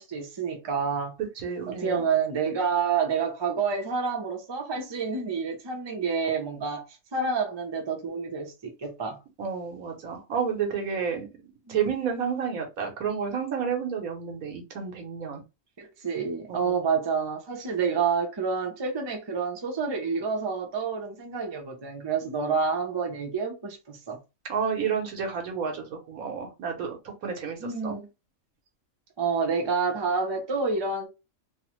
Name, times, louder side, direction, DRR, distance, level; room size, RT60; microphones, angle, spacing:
voice 1, 0.0-1.2 1.7-9.2 11.7-11.8 15.8-24.2 27.6-28.1 29.2-31.1, right 5 dB, 35° right, 0.4 m, -28 dB
voice 2, 1.4-2.0 9.4-11.3 11.7-15.4 16.5-16.8 24.5-28.0, right 6 dB, 80° right, 1.3 m, -30 dB
3.0 x 2.0 x 2.9 m
omnidirectional pair, 1.5 m